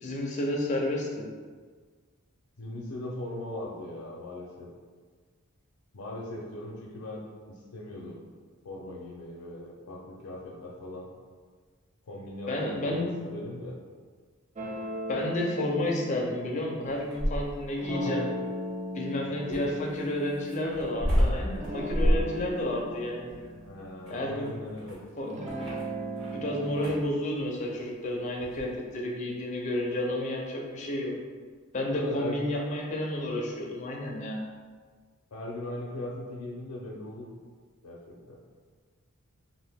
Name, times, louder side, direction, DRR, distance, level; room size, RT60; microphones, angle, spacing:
voice 1, 0.0-1.3 12.5-13.1 15.1-18.3 18.9-23.3 24.1-24.5 25.2-25.3 26.1-31.1 31.7-34.4, left 1 dB, 35° left, -1 dB, 0.5 m, -31 dB
voice 2, 2.6-4.7 5.9-7.2 7.5-8.2 8.6-11.1 12.0-13.8 17.9-18.2 19.3-19.7 23.5-25.0 31.9-32.4 35.3-37.4 37.8-38.4, left 1 dB, 80° left, -3 dB, 0.5 m, -39 dB
sound 1, 14.6-17.2 17.8-21.2 21.6-24.8 25.2-26.9, equal, 30° right, 0.4 m, -38 dB
sound 2, 16.8-17.7 19.5-26.4 26.7-27.1 28.4-28.7, equal, 55° right, 1.5 m, -30 dB
2.7 x 2.5 x 3.4 m, 1.5 s
head